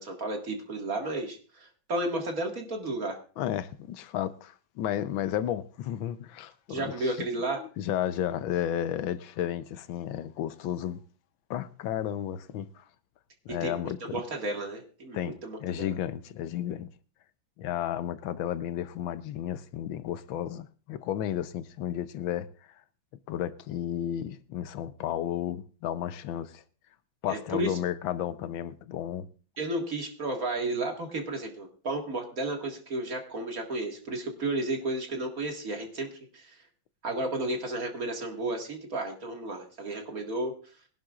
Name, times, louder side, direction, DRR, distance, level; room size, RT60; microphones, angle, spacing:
voice 1, 0.0-3.2 6.7-7.6 13.5-15.9 27.3-27.8 29.6-36.1 36.3-36.6 37.0-40.5, right 2 dB, 45° right, 2.2 m, -33 dB
voice 2, 3.4-7.3 7.6-11.0 11.5-12.8 13.5-14.2 15.1-15.4 15.6-16.9 17.6-22.5 23.3-26.6 27.2-29.3, left 11 dB, 85° left, 1.5 m, -33 dB
22.5 x 11.5 x 2.4 m
omnidirectional pair, 2.1 m